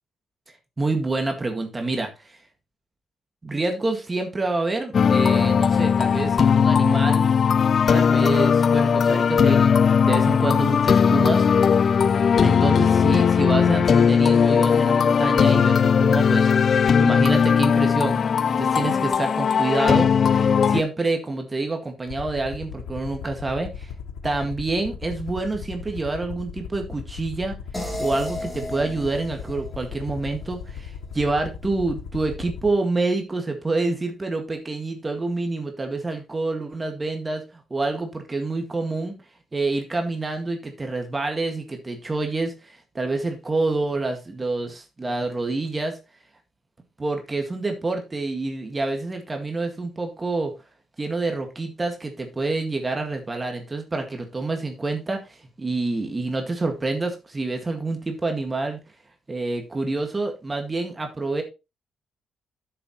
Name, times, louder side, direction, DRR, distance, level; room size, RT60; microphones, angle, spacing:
voice 1, 0.8-2.4 3.4-7.4 7.9-11.5 12.4-18.2 18.5-23.9 24.2-27.6 28.0-39.1 39.5-46.0 47.0-50.5 51.0-58.8 59.3-61.4, right 3 dB, 25° right, 4 dB, 1.9 m, -27 dB
sound 1, 4.9-20.8, left 6 dB, 50° left, 0.3 m, -18 dB
Aircraft, 22.1-32.7, left 7 dB, 90° left, 1.1 m, -37 dB
sound 2, 27.7-30.8, left 1 dB, 10° left, 2.8 m, -35 dB
9.7 x 7.3 x 3.1 m, 0.27 s
cardioid pair, 90°, 0 cm